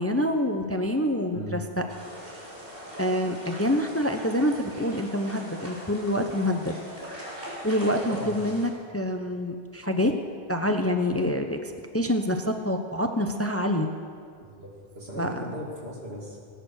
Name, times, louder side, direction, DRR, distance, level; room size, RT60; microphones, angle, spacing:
voice 1, 0.0-1.6 3.0-6.8 7.6-10.1 10.5-13.9 15.2-15.3, left 1 dB, 15° left, 5 dB, 0.8 m, -26 dB
voice 2, 1.3-1.8 8.1-8.4 14.4-16.4, equal, 75° right, -2 dB, 3.1 m, -38 dB
sound 1, 1.9-8.7, equal, 60° right, 3.9 m, -40 dB
19.0 x 10.0 x 6.5 m, 2.2 s
omnidirectional pair, 1.0 m